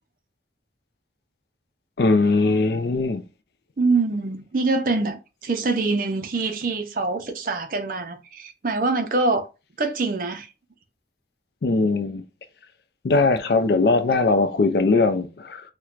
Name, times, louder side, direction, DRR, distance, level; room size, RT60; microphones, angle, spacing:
voice 1, 2.0-3.2 11.6-12.2 13.0-15.6, left 3 dB, 60° left, 0.4 m, -20 dB
voice 2, 3.8-9.5 9.8-10.5, right 3 dB, 50° right, 0.5 m, -24 dB
4.4 x 2.2 x 2.4 m
head